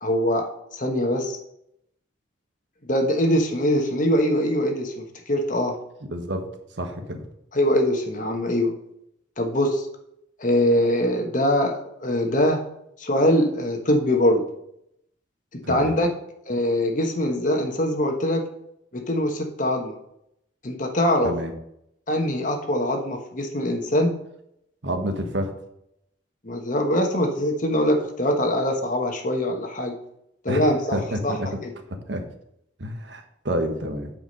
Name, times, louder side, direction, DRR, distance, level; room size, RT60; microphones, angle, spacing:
voice 1, 0.0-1.4 2.8-5.8 7.5-8.7 9.4-9.9 10.4-12.6 13.0-14.4 15.7-16.1 16.5-18.5 18.9-20.0 20.6-21.3 22.1-24.1 26.4-29.9 30.4-31.3, left 1 dB, 45° left, 3 dB, 1.3 m, -23 dB
voice 2, 6.1-6.5 6.8-7.2 15.6-15.9 21.2-21.5 24.8-25.5 30.5-30.6 30.9-31.5 32.1-32.2 32.8-34.1, equal, 75° right, 5 dB, 1.3 m, -28 dB
9.4 x 5.1 x 5.4 m, 0.78 s
head